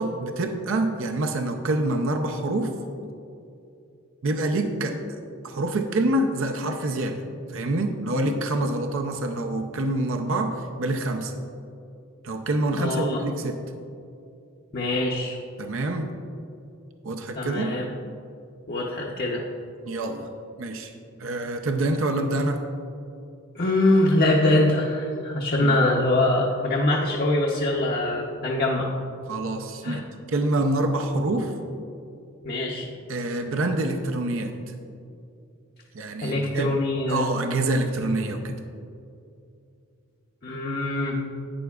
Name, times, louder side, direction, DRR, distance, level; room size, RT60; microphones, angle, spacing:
voice 1, 0.0-2.7 4.2-7.2 7.5-11.3 12.2-13.6 15.6-16.1 17.0-17.7 19.9-20.3 20.6-20.9 21.2-22.6 25.6-25.8 29.3-30.0 30.3-31.5 33.1-34.5 35.9-36.7 37.1-38.6, right 2 dB, 65° right, 5 dB, 0.6 m, -26 dB
voice 2, 12.8-13.2 14.7-15.4 17.3-17.9 18.7-19.4 23.5-28.9 29.8-30.0 32.4-32.9 36.2-37.3 40.4-41.2, left 1 dB, 45° left, -2 dB, 0.7 m, -23 dB
11.5 x 9.1 x 2.4 m, 2.6 s
head